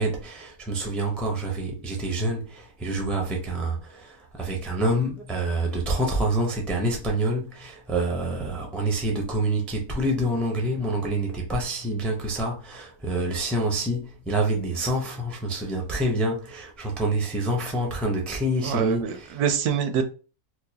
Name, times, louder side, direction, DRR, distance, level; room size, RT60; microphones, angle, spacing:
voice 1, 0.0-19.4, right 1 dB, ahead, 0.4 m, -27 dB
voice 2, 18.6-20.0, right 8 dB, 80° right, 1.1 m, -25 dB
4.4 x 2.3 x 2.8 m
omnidirectional pair, 1.6 m